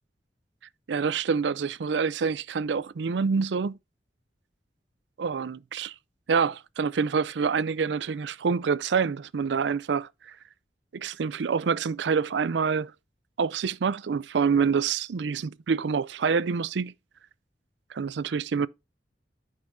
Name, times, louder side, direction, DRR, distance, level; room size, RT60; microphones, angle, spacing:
voice 1, 0.9-3.8 5.2-5.9 6.3-10.4 10.9-12.9 13.4-16.9 17.9-18.7, right 5 dB, 80° right, 0.4 m, -27 dB
13.5 x 5.5 x 2.6 m
head